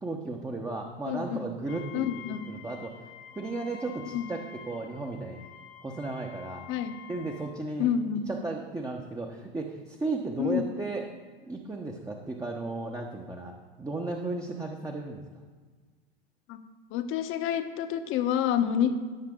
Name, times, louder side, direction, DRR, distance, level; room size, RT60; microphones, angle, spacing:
voice 1, 0.0-3.0 3.3-4.4 4.7-5.4 5.8-6.7 7.1-7.9 8.3-11.0 11.5-13.5 13.8-15.2 18.6-18.9, right 3 dB, 10° right, 1 dB, 1.2 m, -35 dB
voice 2, 1.1-1.5 1.9-2.5 4.1-4.3 6.7-6.9 7.8-8.2 10.4-10.6 16.5-16.6 16.9-18.9, left 10 dB, 45° left, 8 dB, 1.2 m, -28 dB
Wind instrument woodwind instrument, 1.7-7.6, left 8 dB, 70° left, 1.4 m, -48 dB
17.5 x 6.5 x 3.8 m, 1.5 s
hypercardioid pair, 90°, 30 cm